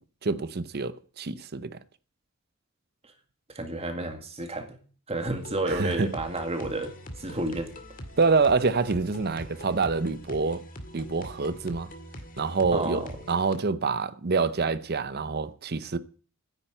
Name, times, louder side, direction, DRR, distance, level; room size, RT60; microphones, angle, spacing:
voice 1, 0.2-1.8 5.7-6.1 8.2-10.6 10.9-11.9 12.4-16.0, right 4 dB, 45° right, 0.7 m, -26 dB
voice 2, 3.5-4.7 5.1-7.7 12.7-13.1, right 2 dB, 30° right, 2.1 m, -31 dB
sound 1, 5.3-13.6, equal, 40° left, 2.0 m, -43 dB
10.0 x 8.7 x 9.0 m
head